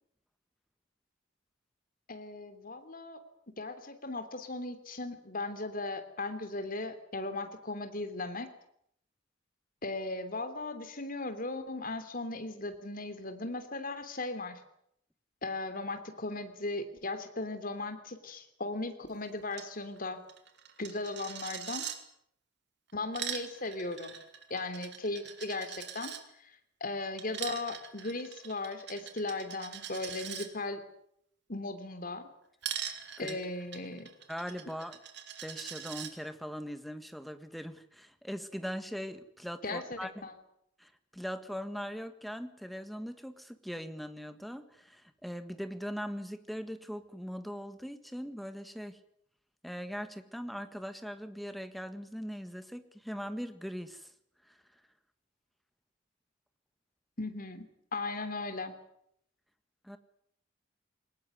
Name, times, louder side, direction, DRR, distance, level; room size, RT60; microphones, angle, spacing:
voice 1, 2.1-3.2 3.6-8.5 9.8-14.6 15.4-20.2 20.8-21.8 22.9-24.1 24.5-26.1 26.4-30.8 31.5-32.3 33.2-34.1 39.6-40.3 57.2-57.7 57.9-58.7, left 2 dB, 45° left, 9 dB, 3.2 m, -37 dB
Coin (dropping), 19.5-19.7 20.0-20.1 20.3-22.0 22.9-26.2 27.2-30.5 32.6-36.1, right 9 dB, 60° right, 3.0 m, -42 dB
voice 2, 34.3-35.0 35.4-40.2 40.8-49.0 49.6-54.1 54.5-54.6 59.8-60.0, equal, ahead, 9 dB, 1.6 m, -40 dB
22.0 x 19.5 x 9.5 m, 0.72 s
head